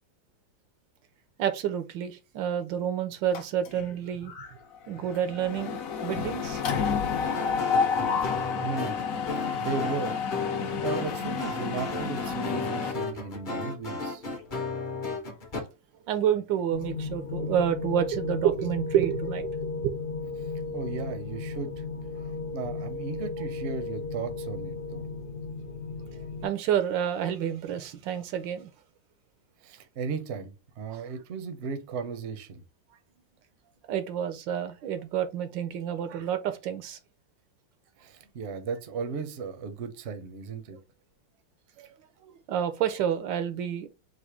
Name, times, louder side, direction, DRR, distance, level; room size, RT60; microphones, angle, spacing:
voice 1, 1.4-4.3 4.9-6.6 16.1-19.9 26.4-28.7 30.9-31.0 33.9-37.0 41.8-41.9 42.2-43.9, right 9 dB, 80° right, 1.3 m, -29 dB
Mechanisms, 3.3-3.9 4.3-4.5 4.7-12.9, left 6 dB, 60° left, 1.0 m, -30 dB
sound 1, 7.2-15.6, left 3 dB, 35° left, 0.9 m, -35 dB
voice 2, 8.6-8.9 9.3-10.2 10.6-14.2 20.7-21.8 22.2-25.1 29.6-32.6 38.0-40.8, right 5 dB, 55° right, 0.8 m, -36 dB
sound 2, 16.7-26.5, left 4 dB, 75° left, 0.4 m, -35 dB
4.1 x 2.6 x 4.7 m
omnidirectional pair, 2.0 m